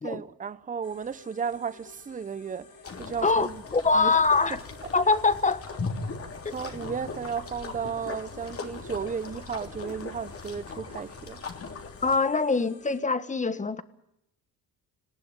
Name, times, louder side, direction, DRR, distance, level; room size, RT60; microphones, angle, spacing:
voice 1, 0.0-3.6 3.9-4.1 6.5-11.4, right 6 dB, 20° right, 0.9 m, -34 dB
sound 1, 0.8-13.0, left 4 dB, 60° left, 3.3 m, -53 dB
sound 2, 2.7-9.1, left 8 dB, 75° left, 3.6 m, -54 dB
sound 3, 2.8-12.2, left 4 dB, 35° left, 3.3 m, -39 dB
voice 2, 3.2-4.6 4.9-5.6 6.4-6.6 12.0-13.8, left 4 dB, 20° left, 1.5 m, -24 dB
19.5 x 17.5 x 9.9 m
cardioid pair, 105°, 38 cm